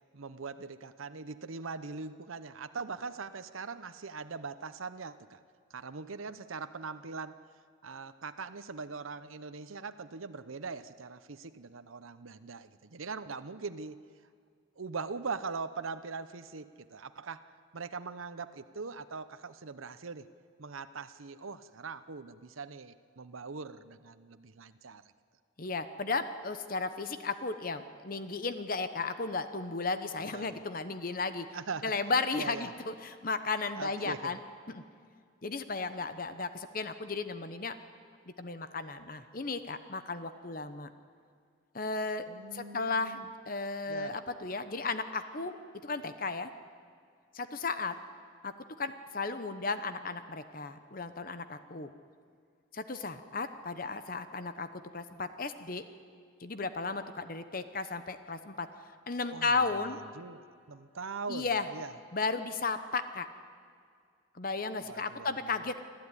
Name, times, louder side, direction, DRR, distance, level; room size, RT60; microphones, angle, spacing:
voice 1, 0.1-5.4 5.7-7.4 7.8-14.0 14.8-20.3 20.6-25.0 30.3-30.6 31.5-31.9 32.3-32.7 33.8-34.3 42.3-43.2 43.9-44.2 59.3-59.7 60.1-61.9 64.8-65.7, right 4 dB, 90° right, 11 dB, 0.8 m, -41 dB
voice 2, 25.6-31.5 31.8-34.4 34.7-34.8 35.4-37.8 38.4-40.9 41.7-42.3 42.5-45.6 45.8-46.5 47.3-47.9 48.4-51.9 52.7-55.8 56.4-58.7 59.1-60.0 61.3-61.7 62.1-63.3 64.3-65.8, left 3 dB, 45° left, 10 dB, 1.0 m, -34 dB
25.5 x 14.5 x 9.8 m, 2.2 s
head